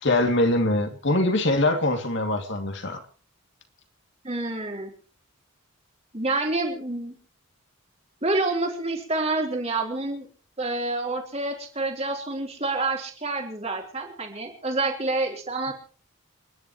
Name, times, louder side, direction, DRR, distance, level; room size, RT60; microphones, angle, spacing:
voice 1, 0.0-3.0, left 1 dB, 55° left, 5 dB, 2.7 m, -23 dB
voice 2, 4.2-4.9 6.1-7.2 8.2-10.3 10.6-15.7, right 2 dB, 30° right, 1 dB, 3.7 m, -28 dB
28.5 x 11.0 x 3.1 m, 0.41 s
head